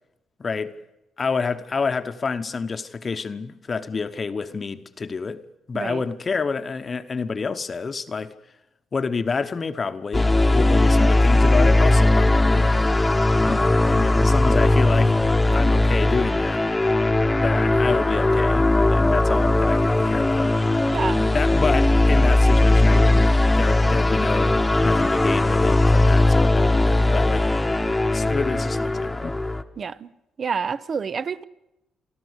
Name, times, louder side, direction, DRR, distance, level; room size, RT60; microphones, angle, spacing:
voice 1, 0.4-0.7 1.2-5.4 5.7-8.3 8.9-12.7 13.4-15.2 15.5-16.7 17.4-20.5 21.3-24.6 24.8-27.5 28.1-29.4, left 4 dB, 35° left, 1.0 m, -28 dB
sound 1, 10.1-29.6, left 2 dB, 15° left, 1.1 m, -19 dB
voice 2, 20.9-21.3 29.8-30.1 30.4-31.4, right 6 dB, 45° right, 0.8 m, -28 dB
28.5 x 12.0 x 8.1 m
cardioid pair, 90°, 0 cm